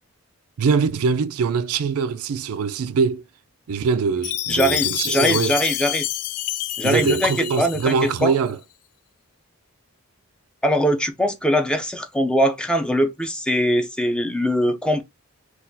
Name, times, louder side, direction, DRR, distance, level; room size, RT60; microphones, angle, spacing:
voice 1, 0.6-3.2 3.7-5.6 6.8-8.6, right 5 dB, 75° right, 0.4 m, -22 dB
Chime, 4.2-8.4, left 13 dB, 85° left, 0.3 m, -28 dB
voice 2, 4.5-6.1 6.8-8.3 10.6-15.0, equal, 5° left, 0.4 m, -22 dB
4.0 x 2.3 x 2.7 m
head